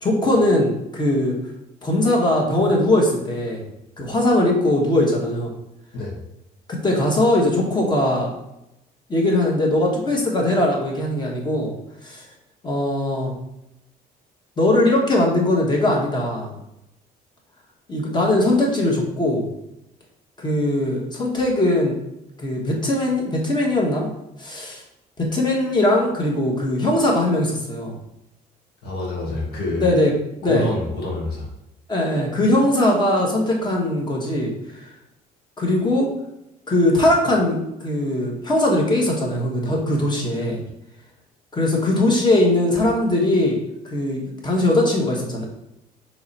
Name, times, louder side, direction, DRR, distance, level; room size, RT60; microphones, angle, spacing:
voice 1, 0.0-1.4 1.8-3.6 4.0-5.5 6.7-8.3 9.1-11.7 12.0-12.2 12.6-13.3 14.6-16.5 17.9-19.5 20.4-21.9 22.4-24.1 24.4-24.8 25.2-28.0 29.8-30.1 30.4-30.7 31.9-34.5 34.8-34.9 35.6-36.1 36.7-40.6 41.5-43.6 43.8-45.5, left 1 dB, 25° left, -1 dB, 1.3 m, -20 dB
voice 2, 28.8-29.9 30.4-31.5, left 2 dB, 70° left, -3 dB, 1.4 m, -27 dB
3.9 x 3.1 x 4.1 m, 0.85 s
cardioid pair, 110°, 17 cm